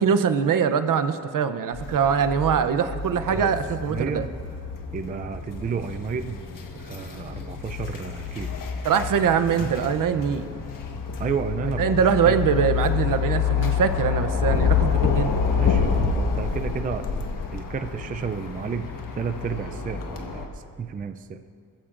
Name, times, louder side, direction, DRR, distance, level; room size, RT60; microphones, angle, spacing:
voice 1, 0.0-4.3 8.8-10.5 11.8-15.4, right 7 dB, 65° right, 10 dB, 0.7 m, -23 dB
sound 1, 1.7-20.5, left 7 dB, 65° left, 1.2 m, -28 dB
voice 2, 3.9-4.3 4.9-6.4 6.8-8.5 9.6-9.7 11.2-12.4 15.5-17.1 17.5-18.9 19.2-21.4, right 6 dB, 25° right, 9 dB, 0.3 m, -31 dB
20.5 x 14.5 x 2.5 m, 2.2 s
wide cardioid pair, 170°, 35 cm